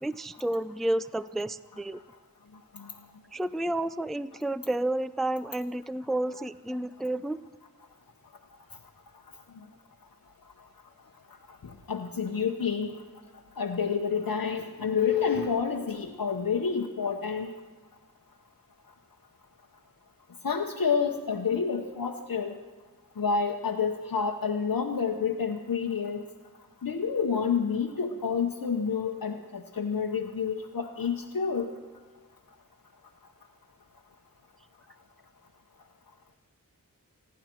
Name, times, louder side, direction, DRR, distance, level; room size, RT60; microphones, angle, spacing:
voice 1, 0.0-2.0 3.3-7.4, right 1 dB, ahead, 15 dB, 0.4 m, -31 dB
voice 2, 11.6-12.9 13.6-17.5 20.4-22.5 23.2-26.2 26.8-31.7, left 6 dB, 80° left, 1 dB, 1.0 m, -29 dB
29.0 x 10.5 x 4.5 m, 1.4 s
wide cardioid pair, 60°, 34 cm